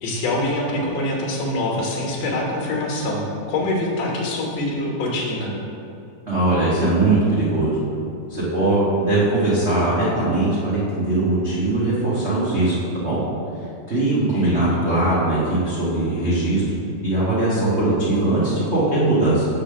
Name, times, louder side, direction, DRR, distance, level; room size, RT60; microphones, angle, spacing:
voice 1, 0.0-5.5 14.3-14.6, left 1 dB, 65° left, -2 dB, 2.1 m, -25 dB
voice 2, 6.3-7.8 8.3-13.2 13.9-16.6 17.0-19.5, right 2 dB, 75° right, -9 dB, 0.6 m, -20 dB
6.7 x 4.0 x 6.4 m, 2.7 s
omnidirectional pair, 3.5 m